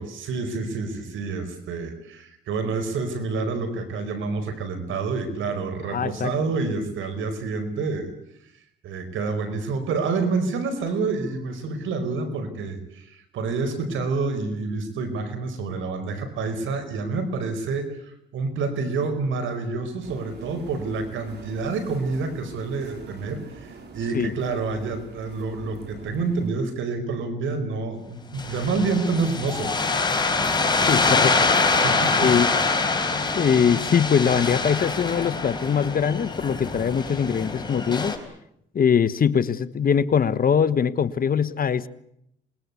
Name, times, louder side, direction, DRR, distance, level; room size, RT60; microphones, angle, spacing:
voice 1, 0.0-8.1 8.8-29.8 31.7-32.6, right 4 dB, 80° right, 9 dB, 4.9 m, -28 dB
voice 2, 5.9-6.3 24.1-24.3 30.8-31.7 32.2-32.5 33.3-38.2 38.7-41.9, left 7 dB, 45° left, 14 dB, 1.2 m, -22 dB
sound 1, 20.0-26.5, right 3 dB, 60° right, 5.9 m, -44 dB
sound 2, 28.4-38.2, left 3 dB, 20° left, 4.3 m, -24 dB
26.5 x 20.5 x 8.4 m, 0.76 s
cardioid pair, 90°, 20 cm